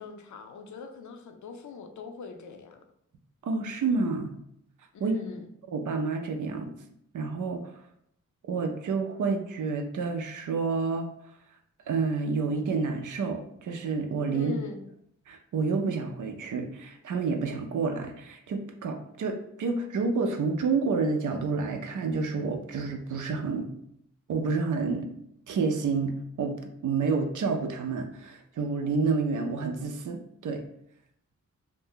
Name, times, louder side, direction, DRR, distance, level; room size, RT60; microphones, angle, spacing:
voice 1, 0.0-2.8 4.9-5.5 14.3-14.8, left 4 dB, 65° left, 6 dB, 0.5 m, -41 dB
voice 2, 3.4-4.3 5.0-5.2 5.7-6.7 7.1-7.7 8.5-11.1 11.9-14.5 15.3-23.7 24.3-25.1 25.5-26.6 26.8-30.2 30.4-30.6, right 4 dB, 75° right, 4 dB, 0.5 m, -29 dB
2.5 x 2.1 x 3.6 m, 0.73 s
cardioid pair, 60°, 31 cm